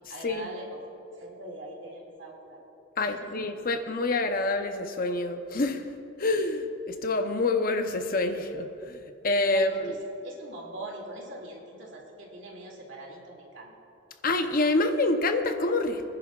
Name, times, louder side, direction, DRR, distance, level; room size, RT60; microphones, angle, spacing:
voice 1, 0.1-0.8 1.2-2.6 3.0-3.3 9.5-10.0 10.2-13.7, right 1 dB, 80° right, -1 dB, 2.4 m, -42 dB
voice 2, 3.0-5.8 6.2-9.0 9.2-9.9 14.2-16.1, left 2 dB, 50° left, 7 dB, 0.7 m, -27 dB
25.0 x 10.5 x 2.4 m, 2.8 s
head